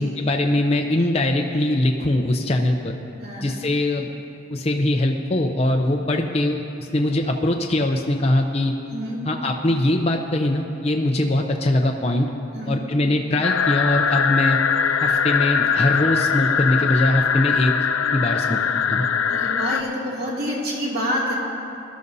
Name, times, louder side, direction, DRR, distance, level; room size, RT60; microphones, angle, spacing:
voice 1, 0.0-3.0 3.4-4.1 4.5-8.7 9.3-12.3 12.7-14.6 15.0-17.7 18.1-18.6 18.9-19.0, left 1 dB, 30° left, 2 dB, 0.5 m, -22 dB
voice 2, 3.2-3.6 8.9-9.2 12.5-12.8 19.3-21.3, equal, 50° right, -5 dB, 2.5 m, -27 dB
sound 1, 13.4-19.8, left 7 dB, 80° left, 0.5 m, -21 dB
21.5 x 12.5 x 2.7 m, 2.9 s
head